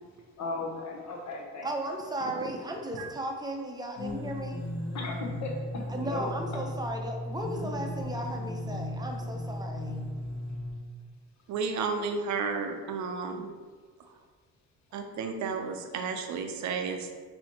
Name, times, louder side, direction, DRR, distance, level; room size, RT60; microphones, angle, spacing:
voice 1, 0.4-1.7 4.9-6.3, left 3 dB, 65° left, 0 dB, 0.8 m, -36 dB
voice 2, 1.6-4.6 5.9-10.0, right 1 dB, 15° right, 2 dB, 0.5 m, -35 dB
sound 1, 4.0-10.7, left 1 dB, 40° left, 1.3 m, -36 dB
voice 3, 11.5-13.5 14.1-14.2 14.9-17.1, right 5 dB, 70° right, 5 dB, 0.5 m, -32 dB
4.2 x 2.7 x 2.8 m, 1.5 s
cardioid pair, 90°, 30 cm